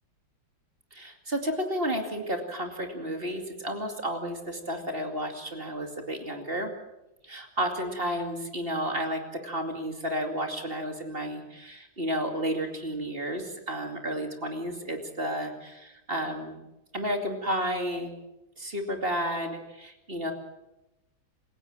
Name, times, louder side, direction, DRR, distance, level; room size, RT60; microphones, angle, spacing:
voice 1, 0.9-6.7 7.2-16.6 16.9-18.1 18.6-20.3, equal, 30° right, 4 dB, 2.6 m, -32 dB
28.0 x 16.0 x 7.5 m, 0.97 s
omnidirectional pair, 2.1 m